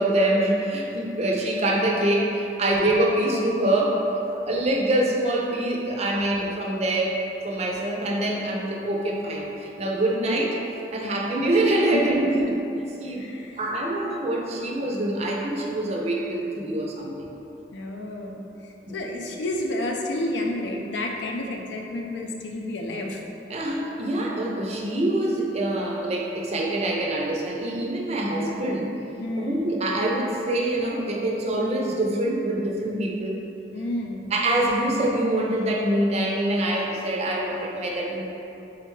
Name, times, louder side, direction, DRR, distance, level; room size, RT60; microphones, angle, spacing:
voice 1, 0.0-4.0 4.5-7.2 7.4-10.6 10.9-13.2 13.6-17.3 18.9-19.0 23.5-28.9 29.4-33.4 34.3-38.2, right 1 dB, 35° right, -1 dB, 0.4 m, -25 dB
voice 2, 13.1-13.7 17.7-23.2 29.2-29.7 33.7-34.3, left 1 dB, 80° left, 1 dB, 0.4 m, -30 dB
3.7 x 3.3 x 3.1 m, 2.9 s
head